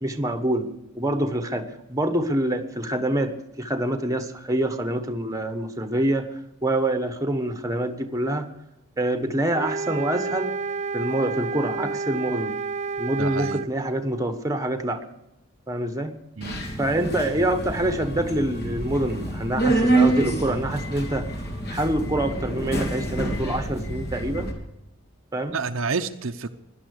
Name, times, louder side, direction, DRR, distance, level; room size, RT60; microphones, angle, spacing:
voice 1, 0.0-0.7 0.9-6.3 6.6-8.5 9.0-10.6 10.9-12.5 13.0-15.0 15.7-16.1 16.8-21.3 21.7-24.5 25.3-25.6, right 1 dB, 15° right, 8 dB, 1.2 m, -26 dB
sound 1, 9.5-13.7, right 4 dB, 30° right, 0.5 m, -30 dB
voice 2, 13.2-13.6 16.4-16.6 25.5-26.5, right 4 dB, 60° right, 7 dB, 0.7 m, -29 dB
Subway metro underground, 16.4-24.5, right 2 dB, 45° left, 2.8 m, -27 dB
17.5 x 11.5 x 6.6 m, 0.91 s
head